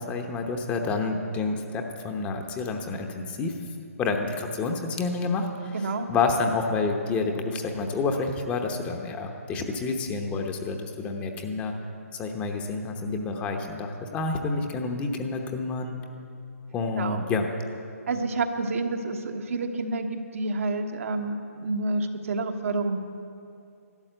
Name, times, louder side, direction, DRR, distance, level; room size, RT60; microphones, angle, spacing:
voice 1, 0.0-3.6 4.0-11.7 12.1-16.0 16.7-17.5, left 4 dB, 15° left, 4 dB, 0.9 m, -29 dB
voice 2, 5.7-6.1 16.9-17.3 18.1-23.0, right 3 dB, 60° right, 5 dB, 1.3 m, -29 dB
12.0 x 11.5 x 7.9 m, 2.5 s
hypercardioid pair, 145°, 8 cm